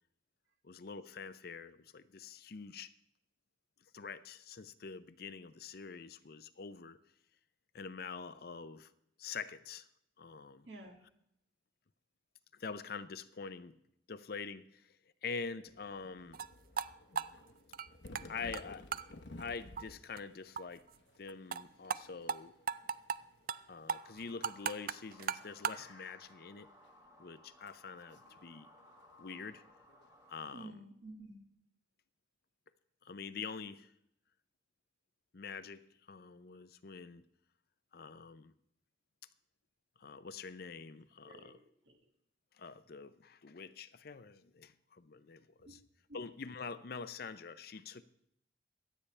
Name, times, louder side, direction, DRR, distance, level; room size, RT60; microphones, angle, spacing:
voice 1, 0.6-2.9 3.9-7.0 7.7-8.9 9.2-9.9 10.2-10.7 12.5-13.7 14.1-15.0 15.2-16.4 18.3-18.9 19.4-20.9 21.2-22.5 23.7-26.7 27.2-28.7 29.2-29.6 30.3-30.7 33.0-33.9 35.3-37.2 37.9-38.5 40.0-41.6 42.5-45.8 46.1-48.0, left 5 dB, 55° left, 0.6 m, -45 dB
voice 2, 10.6-11.0 30.5-31.4 41.2-42.0 45.7-45.8 46.1-46.2, right 2 dB, 90° right, 2.3 m, -51 dB
sound 1, 15.6-30.6, left 2 dB, 70° left, 1.0 m, -57 dB
sound 2, 16.3-16.5 16.8-16.9 17.2-18.2 18.5-18.6 18.9-19.0 19.4-19.5 19.8-19.9 20.2-20.3 20.6-20.7 20.9-21.0 21.3-21.6 21.9-22.0 22.3-22.4 22.7-23.2 23.5-23.6 23.9-25.8, right 7 dB, 50° right, 0.4 m, -36 dB
sound 3, 23.9-30.4, left 1 dB, 15° right, 0.9 m, -62 dB
24.0 x 8.5 x 3.3 m
head